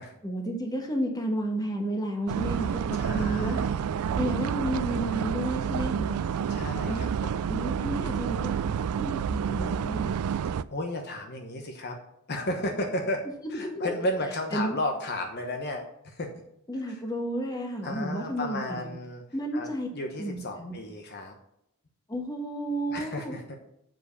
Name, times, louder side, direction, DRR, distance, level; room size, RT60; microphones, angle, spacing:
voice 1, 0.2-2.8 3.1-3.7 4.2-6.2 6.9-7.1 7.5-10.1 13.5-13.9 14.5-14.8 16.7-18.9 19.3-19.9 20.2-20.7 22.1-23.3, right 1 dB, 15° left, 2 dB, 1.3 m, -32 dB
sound 1, 2.3-10.6, right 7 dB, 85° right, 0.3 m, -29 dB
voice 2, 3.0-3.9 6.5-7.4 10.7-12.0 12.3-13.2 13.5-16.3 16.8-17.0 17.8-19.2 19.5-21.3 22.9-23.6, left 1 dB, 50° left, 3 dB, 1.0 m, -33 dB
7.6 x 5.1 x 6.6 m, 0.76 s
head